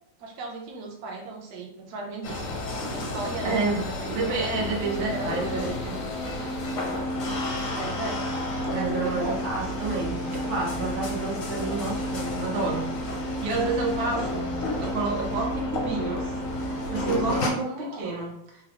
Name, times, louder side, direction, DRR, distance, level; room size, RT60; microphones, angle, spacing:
voice 1, 0.2-2.5 2.9-4.4 5.0-5.6 7.7-8.2 8.6-9.4 17.6-18.0, right 3 dB, 65° right, -1 dB, 1.0 m, -36 dB
sound 1, 2.2-17.5, left 1 dB, 65° left, 0.8 m, -30 dB
voice 2, 4.1-6.0 8.7-12.9 13.4-14.5 14.8-16.4 16.8-18.3, right 3 dB, 85° right, -2 dB, 1.6 m, -29 dB
3.8 x 2.0 x 2.9 m, 0.73 s
omnidirectional pair, 2.2 m